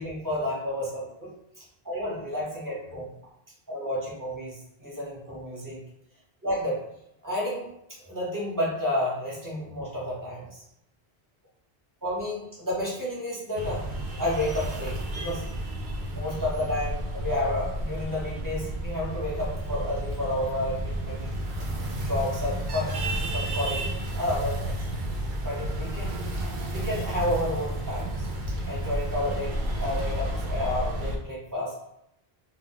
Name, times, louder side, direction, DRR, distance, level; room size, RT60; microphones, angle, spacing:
voice 1, 0.0-1.3 1.8-3.1 3.7-5.8 6.4-6.8 7.2-10.6 12.0-13.9 14.2-15.5 16.1-21.4 21.8-24.8 25.4-26.2 26.7-31.8, left 1 dB, 20° right, -6 dB, 0.8 m, -31 dB
sound 1, 13.5-31.2, right 1 dB, 60° right, 0.6 m, -31 dB
2.2 x 2.2 x 3.8 m, 0.80 s
omnidirectional pair, 1.0 m